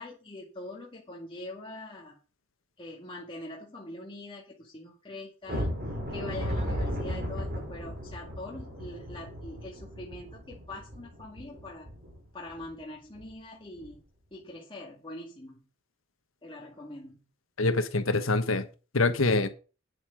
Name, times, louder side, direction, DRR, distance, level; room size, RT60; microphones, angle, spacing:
voice 1, 0.0-2.2 2.8-5.7 6.1-11.9 12.3-14.0 14.3-15.6 16.4-17.2, left 2 dB, 25° left, 2.1 m, -43 dB
sound 1, 5.5-12.2 12.6-12.7 13.1-13.3 13.8-14.0, equal, 50° right, 4.4 m, -35 dB
voice 2, 17.6-18.7 18.9-19.5, left 3 dB, 75° left, 1.3 m, -25 dB
9.5 x 7.9 x 5.2 m
head